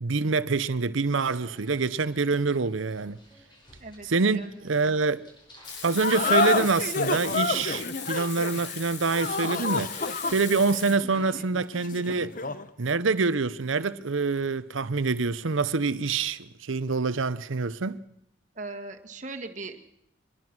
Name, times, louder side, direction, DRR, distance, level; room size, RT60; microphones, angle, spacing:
voice 1, 0.0-3.2 4.0-5.2 5.8-12.3 12.8-18.0, right 4 dB, 85° right, 0.8 m, -26 dB
sound 1, 1.2-7.5, equal, 25° left, 5.3 m, -55 dB
voice 2, 3.8-4.5 18.6-19.8, right 3 dB, 40° right, 1.8 m, -39 dB
Frying (food), 5.6-11.0, left 6 dB, 60° left, 3.1 m, -39 dB
sound 2, 6.0-12.7, left 3 dB, 45° left, 0.9 m, -29 dB
24.5 x 20.5 x 6.2 m
head